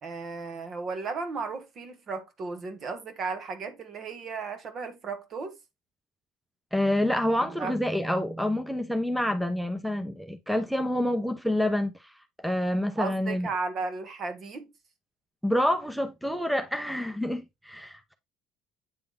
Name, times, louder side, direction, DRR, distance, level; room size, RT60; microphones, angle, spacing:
voice 1, 0.0-5.6 7.4-7.8 13.0-14.7, right 4 dB, 45° right, 1.7 m, -35 dB
voice 2, 6.7-12.1 12.4-13.5 15.4-18.1, left 1 dB, ahead, 0.7 m, -27 dB
8.8 x 3.5 x 3.6 m
supercardioid pair, 95°, 0 cm